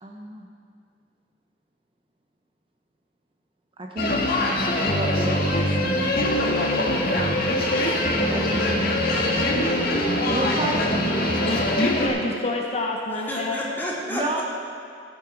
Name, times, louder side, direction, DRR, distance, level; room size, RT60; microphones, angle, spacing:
voice 1, 0.0-0.5 3.8-6.1 8.3-8.7 10.2-11.6 14.1-14.4, right 1 dB, 30° right, 1 dB, 0.9 m, -31 dB
sound 1, 4.0-12.1, left 1 dB, 60° left, 1.7 m, -23 dB
voice 2, 7.5-8.2 13.3-14.4, equal, 10° left, -6 dB, 2.5 m, -32 dB
voice 3, 11.5-13.6, left 2 dB, 35° left, 0 dB, 0.9 m, -27 dB
15.5 x 8.7 x 4.6 m, 2.2 s
head